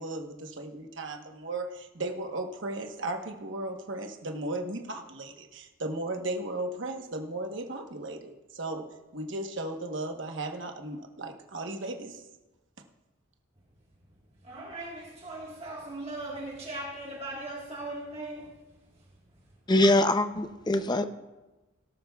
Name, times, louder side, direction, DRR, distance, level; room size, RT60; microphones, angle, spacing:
voice 1, 0.0-12.2, right 2 dB, 60° right, 4 dB, 1.1 m, -36 dB
voice 2, 14.4-18.6, right 2 dB, 30° right, -3 dB, 1.6 m, -39 dB
voice 3, 19.7-21.0, left 1 dB, 20° left, 9 dB, 0.6 m, -23 dB
18.0 x 12.5 x 2.3 m, 1.1 s
head